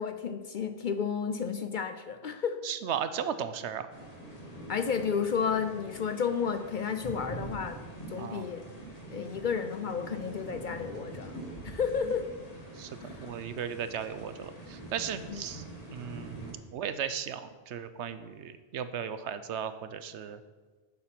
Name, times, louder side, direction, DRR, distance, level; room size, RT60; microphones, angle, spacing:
voice 1, 0.0-2.6 4.7-7.8 8.1-8.6 9.1-12.3 13.0-13.3 15.3-15.4, left 6 dB, 55° left, 8 dB, 0.6 m, -32 dB
voice 2, 2.6-3.9 8.2-8.5 12.8-20.4, right 8 dB, 80° right, 12 dB, 1.0 m, -36 dB
sound 1, 3.9-16.5, right 2 dB, 35° left, 1.8 m, -44 dB
8.6 x 7.4 x 6.0 m, 1.3 s
omnidirectional pair, 1.2 m